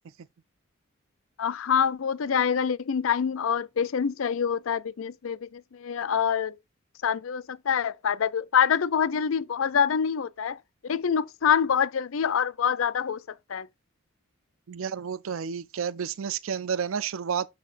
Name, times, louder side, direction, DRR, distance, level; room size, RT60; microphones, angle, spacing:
voice 1, 1.4-6.6 7.0-10.6 10.8-13.2 13.5-13.7, left 7 dB, 70° left, 0.5 m, -26 dB
voice 2, 14.7-17.5, right 7 dB, 70° right, 0.4 m, -31 dB
12.0 x 4.2 x 2.5 m
head